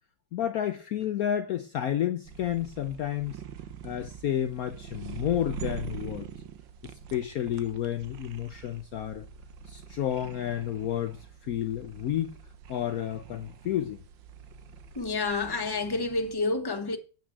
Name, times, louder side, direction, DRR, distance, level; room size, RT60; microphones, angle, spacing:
voice 1, 0.3-3.4 3.8-6.3 6.8-9.3 9.7-12.4 12.7-14.0, left 11 dB, 65° left, 1.0 m, -31 dB
sound 1, 2.2-16.3, right 7 dB, 90° right, 1.7 m, -44 dB
voice 2, 14.9-17.0, left 3 dB, 15° left, 1.1 m, -29 dB
8.8 x 6.0 x 8.1 m
omnidirectional pair, 2.0 m